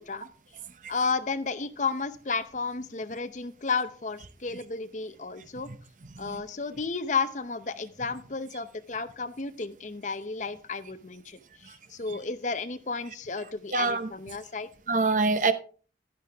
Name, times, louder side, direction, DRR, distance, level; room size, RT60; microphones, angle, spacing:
voice 1, 0.9-5.7 6.2-14.7, left 4 dB, 40° left, 0.7 m, -32 dB
voice 2, 6.1-6.4 11.7-11.8 12.1-12.2 13.7-14.1 14.9-15.5, right 3 dB, 45° right, 0.8 m, -26 dB
10.5 x 10.5 x 3.5 m
head